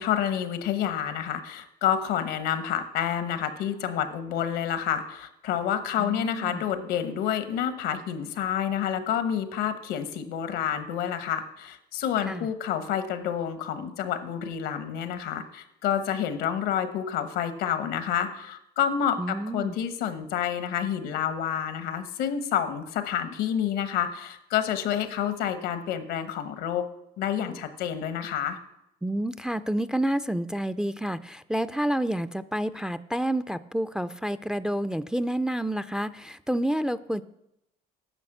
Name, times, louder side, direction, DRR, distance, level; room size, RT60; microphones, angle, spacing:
voice 1, 0.0-26.9 27.2-28.6, left 9 dB, 90° left, 10 dB, 1.1 m, -29 dB
voice 2, 6.0-6.6 12.3-12.5 19.2-19.8 29.0-37.2, right 1 dB, 5° right, 14 dB, 0.3 m, -29 dB
9.8 x 6.0 x 7.8 m, 0.82 s
cardioid pair, 110°, 17 cm